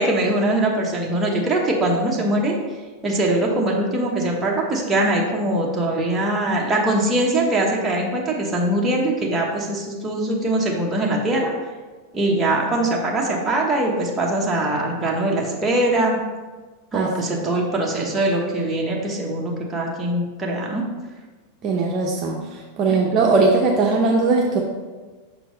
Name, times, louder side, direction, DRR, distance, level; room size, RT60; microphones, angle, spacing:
voice 1, 0.0-2.6 3.0-11.5 12.1-16.2 16.9-20.9 22.9-23.2, right 1 dB, 15° right, -2 dB, 1.2 m, -22 dB
voice 2, 21.6-22.4 22.8-24.6, right 3 dB, 35° right, -1 dB, 0.7 m, -19 dB
6.2 x 4.5 x 3.9 m, 1.3 s
supercardioid pair, 135°, 0 cm